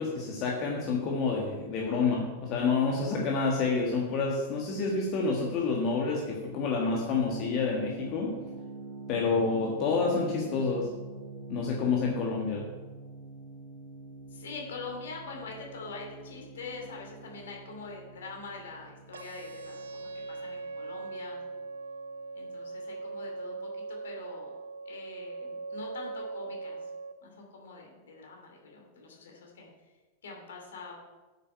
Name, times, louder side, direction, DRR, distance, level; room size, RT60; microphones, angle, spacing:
voice 1, 0.0-8.3 9.1-10.9 11.5-12.7, left 4 dB, 40° left, -1 dB, 1.6 m, -28 dB
sound 1, 7.1-21.9, right 2 dB, 35° right, 3.5 m, -46 dB
voice 2, 14.3-21.4 22.3-24.5 24.9-26.8 27.2-29.7 30.2-30.9, left 4 dB, 65° left, 1 dB, 2.8 m, -44 dB
sound 2, 19.1-27.1, right 3 dB, 70° right, 0.7 m, -40 dB
9.0 x 7.7 x 5.6 m, 1.2 s
figure-of-eight pair, 90°, 0 cm